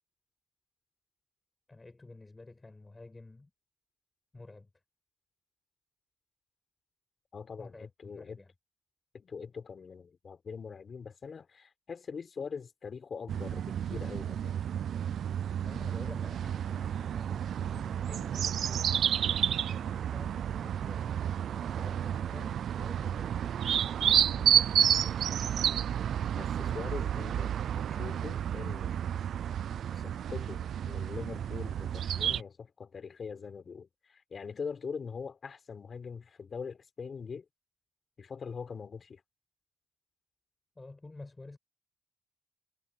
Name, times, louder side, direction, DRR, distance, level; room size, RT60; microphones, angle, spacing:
voice 1, 1.7-3.5 4.3-4.7 7.6-8.5 15.6-18.9 19.8-21.1 21.5-23.6 24.0-24.8 40.7-41.6, left 2 dB, 20° left, 6.2 m, -50 dB
voice 2, 7.3-8.4 9.1-14.6 26.4-29.0 29.9-37.4 38.2-39.2, left 5 dB, 45° left, 4.1 m, -42 dB
sound 1, 13.3-32.4, right 9 dB, 65° right, 0.3 m, -31 dB
cardioid pair, 90°, 0 cm